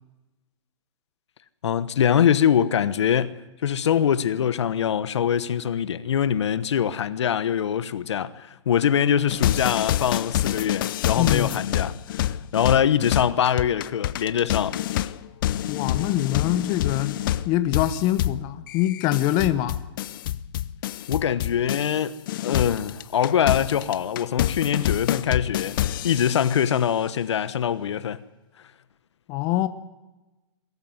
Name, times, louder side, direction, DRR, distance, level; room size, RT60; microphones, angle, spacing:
voice 1, 1.6-3.3 3.6-15.1 21.1-28.2, left 9 dB, 70° left, 1.2 m, -23 dB
sound 1, 9.3-22.0 22.3-26.7, left 12 dB, 45° left, 0.7 m, -27 dB
voice 2, 11.2-11.5 15.7-17.2 17.4-19.8 29.3-29.7, left 13 dB, 30° left, 1.1 m, -24 dB
22.0 x 13.5 x 9.5 m
hypercardioid pair, 145°, 15 cm